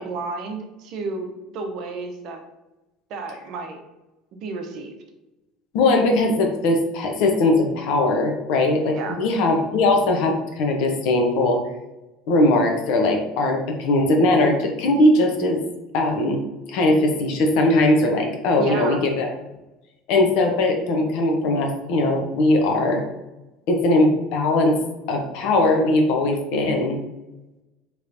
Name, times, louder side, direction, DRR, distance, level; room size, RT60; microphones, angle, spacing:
voice 1, 0.0-2.4 3.1-3.8 4.4-5.0 8.9-9.1 18.6-19.0, right 3 dB, 60° right, 4 dB, 0.6 m, -31 dB
voice 2, 5.7-11.6 12.3-15.6 15.9-16.4 16.7-19.3 20.1-23.0 23.7-24.8 25.1-27.0, left 2 dB, 70° left, 3 dB, 0.7 m, -20 dB
3.1 x 3.0 x 2.5 m, 1.0 s
hypercardioid pair, 85°, 0 cm